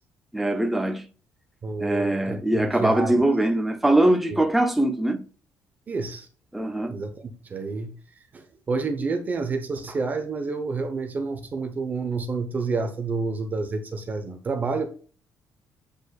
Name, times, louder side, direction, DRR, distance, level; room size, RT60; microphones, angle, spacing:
voice 1, 0.3-1.1 1.8-5.3 6.5-7.0, right 1 dB, 5° right, 0.6 m, -22 dB
voice 2, 1.6-3.3 5.9-6.3 6.9-7.9 8.3-14.9, right 4 dB, 25° right, 0.9 m, -29 dB
8.3 x 5.1 x 2.4 m
cardioid pair, 175°, 6 cm